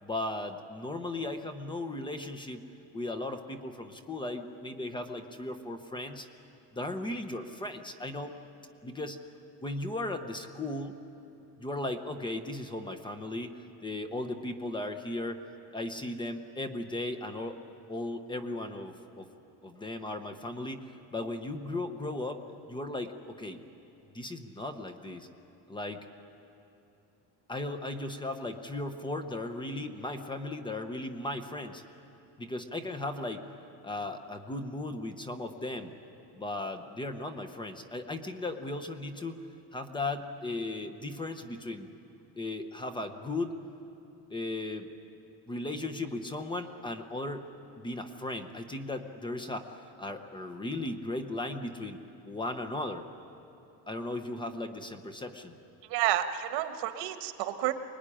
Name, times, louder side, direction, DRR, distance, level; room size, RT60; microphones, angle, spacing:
voice 1, 0.0-2.6 2.9-6.3 6.7-8.4 8.8-9.2 9.6-11.0 11.6-15.4 15.7-17.6 17.9-19.3 19.6-23.6 24.1-25.3 25.7-26.1 27.5-31.8 32.4-33.5 33.8-35.9 36.3-39.4 39.7-41.9 42.4-43.6 44.3-44.9 45.5-47.5 47.8-52.0 52.2-53.1 53.9-55.6, left 2 dB, 10° left, 7 dB, 0.8 m, -36 dB
voice 2, 55.9-57.7, right 13 dB, 80° right, 8 dB, 1.6 m, -30 dB
25.0 x 21.0 x 10.0 m, 2.9 s
cardioid pair, 180°, 40 cm